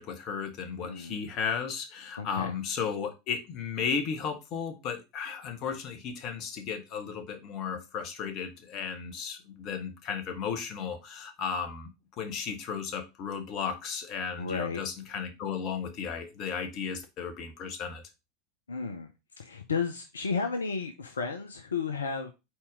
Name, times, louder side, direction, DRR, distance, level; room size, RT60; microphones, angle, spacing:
voice 1, 0.0-11.9 12.2-18.0, left 6 dB, 45° left, 1.3 m, -34 dB
voice 2, 0.8-1.2 2.2-2.5 14.4-14.8 18.7-19.1 19.4-22.3, left 5 dB, 75° left, 0.7 m, -33 dB
4.5 x 4.3 x 5.0 m
figure-of-eight pair, 80°, 0 cm